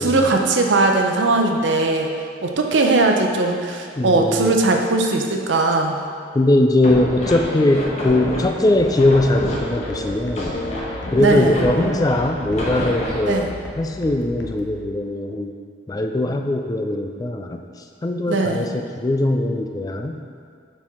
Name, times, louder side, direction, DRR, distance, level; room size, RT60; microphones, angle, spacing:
voice 1, 0.0-2.1 2.4-6.0 11.2-11.6 13.3-13.5 18.3-18.7, right 3 dB, 70° right, 3 dB, 0.6 m, -19 dB
voice 2, 4.0-4.6 6.3-10.6 11.1-13.5 13.8-15.5 15.9-17.6 18.0-20.2, left 1 dB, 20° left, 4 dB, 0.3 m, -20 dB
sound 1, 6.8-13.4, left 1 dB, 40° left, 1.1 m, -28 dB
sound 2, 8.8-14.8, left 2 dB, 70° left, 0.8 m, -38 dB
7.1 x 4.4 x 3.6 m, 2.3 s
head